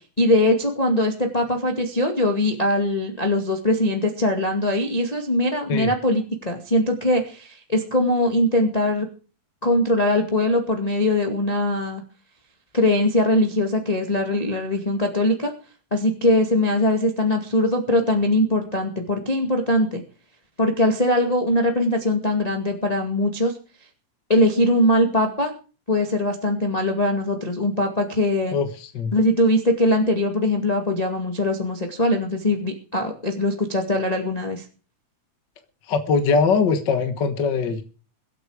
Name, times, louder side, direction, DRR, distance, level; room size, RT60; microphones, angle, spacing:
voice 1, 0.2-9.1 9.6-12.0 12.7-15.5 15.9-20.0 20.6-23.6 24.3-25.5 25.9-28.6 29.1-34.6, left 1 dB, 15° left, 3 dB, 1.8 m, -21 dB
voice 2, 28.5-29.1 35.9-37.8, left 5 dB, 45° left, 7 dB, 1.7 m, -21 dB
23.5 x 8.6 x 4.9 m, 0.37 s
omnidirectional pair, 3.5 m